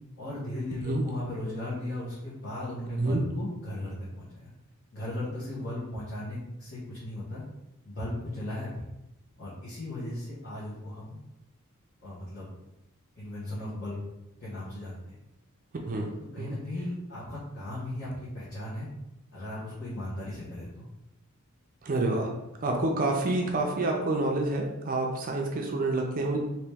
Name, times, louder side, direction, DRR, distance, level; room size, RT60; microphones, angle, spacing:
voice 1, 0.2-4.5 4.9-7.4 7.8-8.9 9.4-11.2 12.0-12.5 13.2-14.0 14.4-15.2 16.3-18.1 18.3-18.9 19.3-20.8, left 1 dB, 50° left, -10 dB, 1.1 m, -37 dB
voice 2, 21.8-22.3 22.6-26.4, right 2 dB, 40° right, 1 dB, 0.4 m, -28 dB
2.9 x 2.9 x 3.4 m, 0.92 s
head